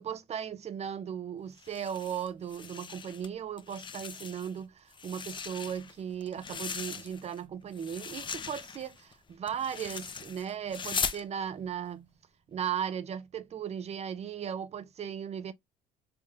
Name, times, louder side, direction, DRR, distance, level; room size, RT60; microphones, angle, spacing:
voice 1, 0.0-12.1 12.5-15.5, right 8 dB, 40° right, 0.5 m, -37 dB
sound 1, 1.6-3.3 3.6-4.6 4.9-7.4 7.7-11.2, left 6 dB, 30° left, 0.6 m, -39 dB
3.6 x 3.4 x 2.6 m
cardioid pair, 110°, 17 cm